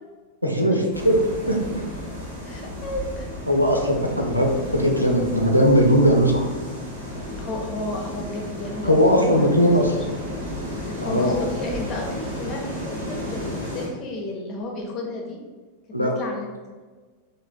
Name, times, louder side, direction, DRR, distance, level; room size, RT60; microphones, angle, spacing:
voice 1, 0.4-0.8 1.0-1.2 1.5-1.6 3.5-6.5 8.8-9.8 11.0-11.4 15.9-16.1, equal, 90° left, 0 dB, 0.4 m, -19 dB
sound 1, 0.9-13.9, equal, 75° right, 1.1 m, -33 dB
voice 2, 2.4-3.2 7.4-9.5 9.8-9.9 10.8-15.4 16.0-16.5, left 2 dB, 30° left, 0 dB, 0.6 m, -32 dB
3.2 x 2.1 x 2.4 m, 1.4 s
figure-of-eight pair, 90°, 0 cm